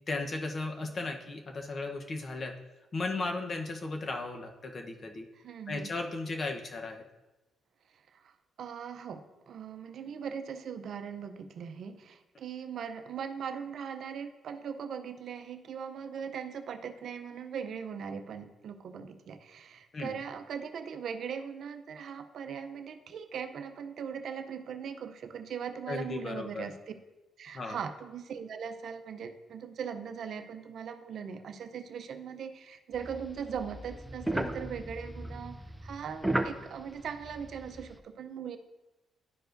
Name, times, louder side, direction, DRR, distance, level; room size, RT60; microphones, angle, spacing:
voice 1, 0.1-2.5 2.9-5.3 5.7-7.0 19.9-20.2 25.9-26.6 27.5-27.8, left 3 dB, 40° left, 4 dB, 0.9 m, -35 dB
voice 2, 5.3-5.9 8.1-26.7 27.4-38.6, right 7 dB, 65° right, 8 dB, 0.6 m, -40 dB
sound 1, 32.9-38.0, right 1 dB, 5° right, 0.5 m, -36 dB
11.5 x 4.7 x 2.6 m, 1.1 s
cardioid pair, 90°, 0 cm